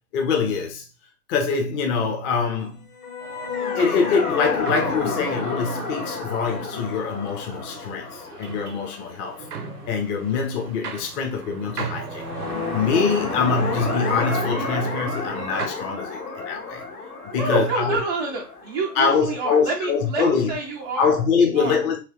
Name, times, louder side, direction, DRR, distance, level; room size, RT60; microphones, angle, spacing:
voice 1, 0.1-0.9 1.3-2.9 3.7-9.5 9.9-12.4 12.7-16.8 17.3-18.0 19.0-20.6 21.0-22.0, left 5 dB, 25° left, 0.6 m, -24 dB
sound 1, 2.9-10.2 12.0-19.8, left 4 dB, 65° left, 1.3 m, -31 dB
sound 2, 3.2-15.7, right 5 dB, 70° right, 0.8 m, -38 dB
voice 2, 17.3-21.1 21.4-21.8, right 3 dB, 25° right, 0.4 m, -28 dB
3.2 x 3.1 x 2.9 m
figure-of-eight pair, 95°, 48 cm